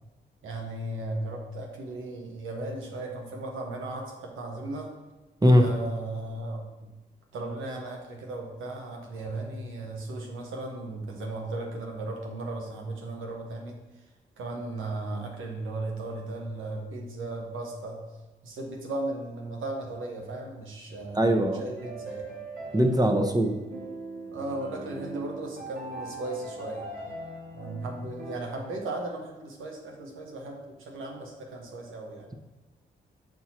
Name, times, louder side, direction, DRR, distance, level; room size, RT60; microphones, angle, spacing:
voice 1, 0.4-4.9 5.6-6.9 7.3-13.8 14.4-18.0 18.4-22.3 24.3-26.9 27.5-32.4, right 2 dB, 80° right, 1 dB, 1.2 m, -36 dB
voice 2, 21.1-21.6 22.7-23.5, equal, 20° right, 6 dB, 0.9 m, -20 dB
sound 1, 21.8-28.4, right 2 dB, 60° right, 2.1 m, -41 dB
7.4 x 4.7 x 2.9 m, 1.1 s
supercardioid pair, 45°, 20 cm